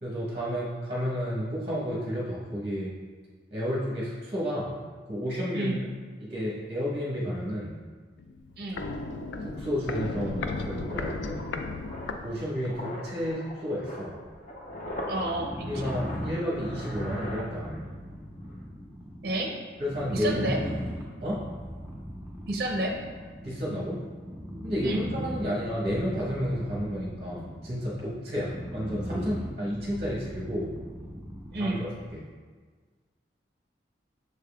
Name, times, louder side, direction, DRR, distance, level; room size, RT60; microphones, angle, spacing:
voice 1, 0.0-2.9 3.5-4.7 5.1-5.8 6.2-7.8 9.4-11.4 12.2-14.1 15.6-17.9 19.8-20.6 21.2-21.4 23.4-24.0 24.6-30.7 31.5-32.3, equal, 30° right, -6 dB, 0.9 m, -31 dB
Walk footsteps, 8.2-12.9 13.2-13.3, left 3 dB, 80° left, 0.3 m, -35 dB
sound 1, 8.6-8.7 9.0-18.1 18.3-18.6, left 1 dB, 40° left, 0.6 m, -42 dB
sound 2, 15.1-32.3, equal, 10° right, 0.6 m, -39 dB
voice 2, 15.1-15.9 19.2-19.5 20.1-20.6 22.5-22.9 24.8-25.0 31.5-31.8, right 2 dB, 55° right, 0 dB, 0.5 m, -30 dB
6.5 x 3.5 x 2.3 m, 1.5 s
head